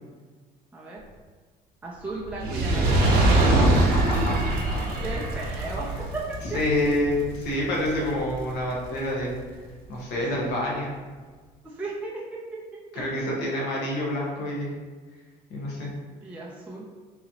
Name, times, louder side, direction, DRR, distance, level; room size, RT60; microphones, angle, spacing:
voice 1, 1.8-4.1 5.0-6.6 7.9-8.1 10.1-10.4 11.6-12.6 12.9-13.4 16.2-16.8, right 2 dB, 10° right, -5 dB, 0.5 m, -37 dB
Fire, 2.3-8.7 9.4-9.5, right 2 dB, 65° right, 0.8 m, -23 dB
voice 2, 3.4-4.9 6.5-9.4 9.9-10.9 12.9-14.7 15.5-15.9, left 1 dB, 75° left, -3 dB, 1.1 m, -28 dB
4.0 x 2.8 x 2.8 m, 1.4 s
cardioid pair, 110°, 17 cm